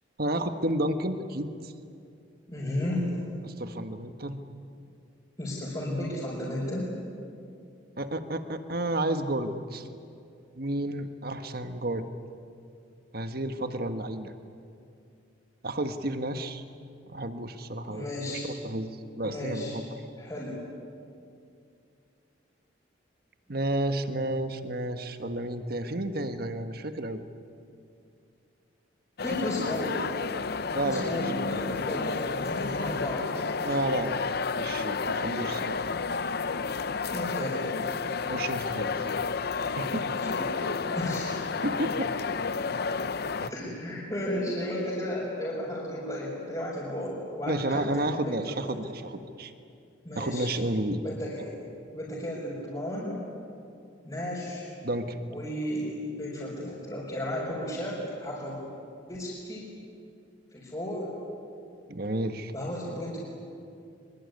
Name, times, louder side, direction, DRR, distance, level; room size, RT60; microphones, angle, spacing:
voice 1, 0.2-1.7 3.4-4.4 8.0-9.9 10.5-12.1 13.1-14.3 15.6-16.6 17.1-19.8 23.5-27.2 29.3-29.7 30.7-31.3 31.5-31.7 33.6-34.2 34.5-35.8 38.3-39.0 39.7-40.1 41.6-42.1 43.4-43.5 47.5-49.5 50.1-51.0 54.8-55.2 61.9-62.5, right 1 dB, 55° right, 8 dB, 1.5 m, -31 dB
voice 2, 2.5-3.0 5.4-6.9 17.9-18.5 19.2-19.8 20.2-20.6 29.2-30.0 30.8-33.5 37.1-37.6 40.2-40.7 40.9-41.4 43.5-48.8 50.0-50.5 51.0-51.6 51.9-53.1 54.0-54.7 55.3-58.6 59.1-59.7 60.5-61.1 62.5-63.2, left 1 dB, 20° left, -8 dB, 5.7 m, -34 dB
sound 1, 29.2-43.5, left 4 dB, 55° left, 0.7 m, -31 dB
24.0 x 23.5 x 9.6 m, 2.5 s
head